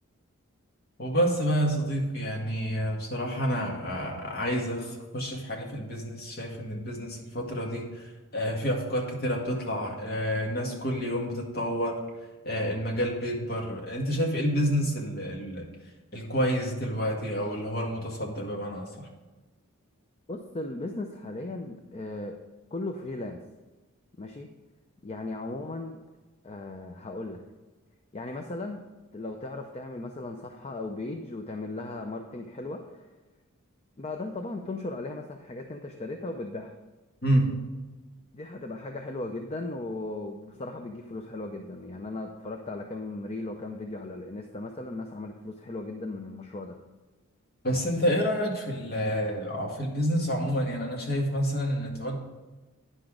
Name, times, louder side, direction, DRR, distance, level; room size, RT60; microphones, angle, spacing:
voice 1, 1.0-12.0 12.4-15.7 16.1-19.1 37.2-37.5 47.6-52.2, equal, 45° left, -1 dB, 1.9 m, -29 dB
voice 2, 20.3-22.4 22.7-23.4 24.2-24.5 25.0-26.0 26.4-27.4 28.1-28.8 29.1-33.1 34.0-36.7 38.3-46.8, left 2 dB, 30° left, 4 dB, 0.5 m, -37 dB
9.9 x 6.0 x 5.0 m, 1.2 s
head